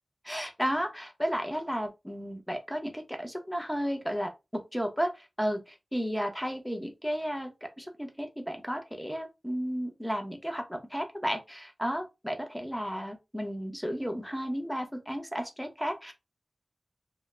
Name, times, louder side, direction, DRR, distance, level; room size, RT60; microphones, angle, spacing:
voice 1, 0.2-5.6 5.9-16.1, equal, ahead, 0.7 m, -33 dB
2.3 x 2.1 x 3.1 m
wide cardioid pair, 60°, 0 cm